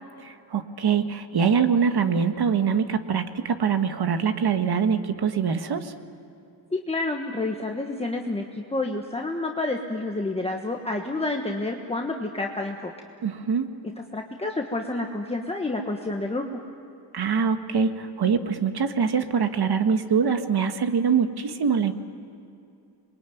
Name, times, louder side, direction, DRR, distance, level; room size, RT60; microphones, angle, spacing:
voice 1, 0.3-5.9 13.2-13.7 17.1-21.9, right 6 dB, 55° right, 8 dB, 1.5 m, -24 dB
voice 2, 6.7-12.9 14.1-16.5, left 2 dB, 15° left, 1 dB, 1.4 m, -29 dB
27.0 x 22.5 x 9.3 m, 2.6 s
wide cardioid pair, 140°, 46 cm